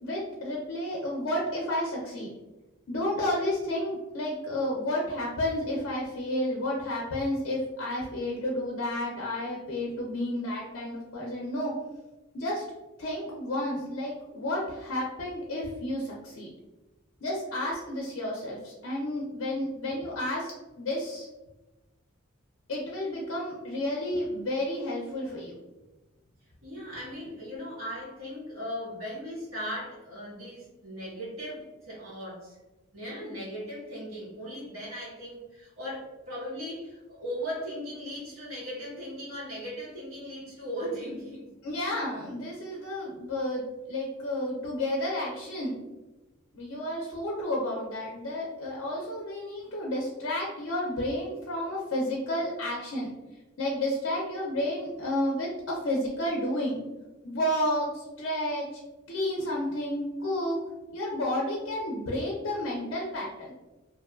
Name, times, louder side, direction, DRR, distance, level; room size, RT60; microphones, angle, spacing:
voice 1, 0.0-2.3 2.9-11.7 12.3-12.6 13.0-16.5 17.2-21.3 22.7-25.5 41.6-45.8 46.5-53.1 53.6-56.8 57.2-58.8 59.1-60.6 60.9-63.5, left 1 dB, 60° left, -3 dB, 0.5 m, -31 dB
voice 2, 26.6-32.6 32.9-41.5, equal, 75° right, -7 dB, 1.4 m, -38 dB
2.6 x 2.2 x 2.2 m, 1.1 s
head